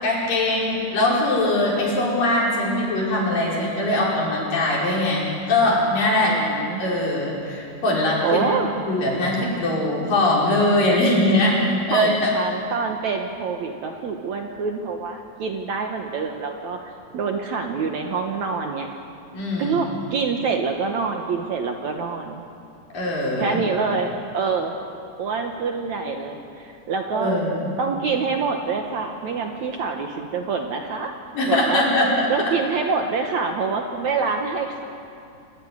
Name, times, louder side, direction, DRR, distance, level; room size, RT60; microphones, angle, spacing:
voice 1, 0.0-6.4 6.8-12.3 19.3-19.8 22.9-23.6 27.1-27.7 31.3-32.2, left 1 dB, 65° left, -5 dB, 7.1 m, -21 dB
voice 2, 6.2-6.8 8.2-8.8 11.9-18.9 19.6-22.4 23.4-24.8 25.2-27.4 27.8-31.1 31.4-31.8 32.3-34.8, right 5 dB, 60° right, 3 dB, 2.1 m, -26 dB
27.5 x 15.0 x 9.7 m, 2.5 s
omnidirectional pair, 4.3 m